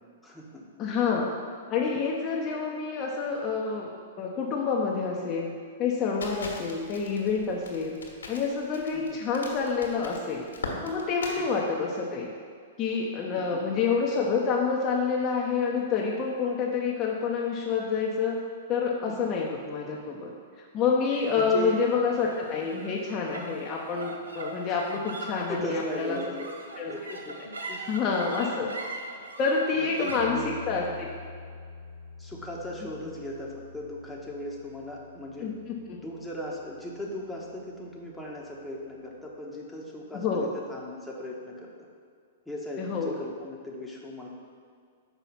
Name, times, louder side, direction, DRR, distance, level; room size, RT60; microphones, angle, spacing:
voice 1, 0.2-0.6 8.9-9.0 11.4-11.6 13.3-13.6 19.1-19.2 21.3-21.9 24.7-24.8 25.5-26.5 26.9-27.4 27.7-27.9 29.8-30.6 32.2-35.5 36.0-41.7 42.5-44.3, equal, 5° left, -4 dB, 1.1 m, -38 dB
voice 2, 0.8-1.3 1.7-3.9 4.2-5.5 5.8-8.0 8.3-10.5 10.8-12.3 12.8-18.4 18.7-20.3 20.7-26.2 26.8-26.9 27.9-28.7 29.4-31.1 35.4-36.0 40.1-40.5 42.8-43.1, left 5 dB, 35° left, -2 dB, 0.7 m, -28 dB
Crackle, 6.2-11.4, left 3 dB, 85° left, 1.4 m, -40 dB
sound 1, 21.1-37.7, right 1 dB, 90° right, 0.7 m, -43 dB
5.8 x 4.0 x 5.7 m, 2.1 s
hypercardioid pair, 120°, 0 cm